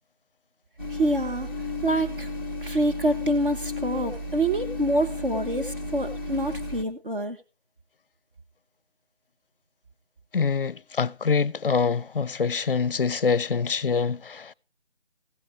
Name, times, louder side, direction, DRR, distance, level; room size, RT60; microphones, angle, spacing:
sound 1, 0.8-6.8, left 2 dB, 20° right, 0.8 m, -33 dB
voice 1, 0.9-1.5 1.8-2.3 2.6-7.4, right 1 dB, 50° right, 1.1 m, -26 dB
voice 2, 10.3-14.5, left 5 dB, 55° left, 0.5 m, -25 dB
15.5 x 6.5 x 5.0 m
figure-of-eight pair, 170°, 33 cm